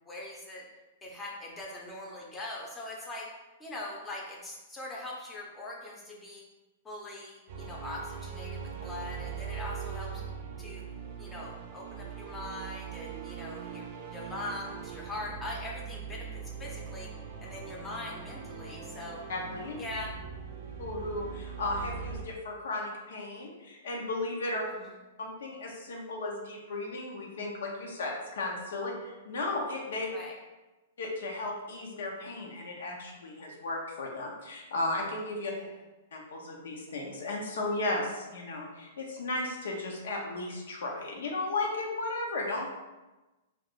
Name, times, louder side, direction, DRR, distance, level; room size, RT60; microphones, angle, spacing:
voice 1, 0.1-0.7 1.0-3.3 3.6-6.4 6.8-10.2 10.6-10.9 11.2-17.1 17.4-19.2 19.8-20.2 24.8-24.9 30.1-30.4 35.5-35.7, left 2 dB, 15° left, -3 dB, 0.6 m, -41 dB
sound 1, 7.5-22.2, right 6 dB, 50° right, 0.5 m, -41 dB
voice 2, 19.3-19.8 20.8-24.6 25.2-30.1 31.0-35.5 36.1-42.7, left 2 dB, 80° left, -1 dB, 0.6 m, -35 dB
2.4 x 2.4 x 3.5 m, 1.1 s
hypercardioid pair, 140°, 0 cm